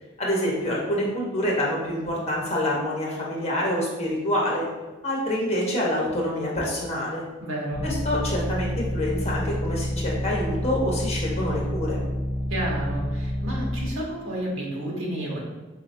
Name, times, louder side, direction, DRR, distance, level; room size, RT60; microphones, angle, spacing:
voice 1, 0.2-4.6 5.0-7.2 7.8-12.0, left 1 dB, 35° left, -3 dB, 1.0 m, -26 dB
voice 2, 7.4-7.8 12.5-15.4, right 1 dB, 85° right, -3 dB, 1.2 m, -31 dB
sound 1, 7.7-13.9, equal, 65° right, 1.4 m, -28 dB
4.9 x 2.9 x 2.7 m, 1.1 s
head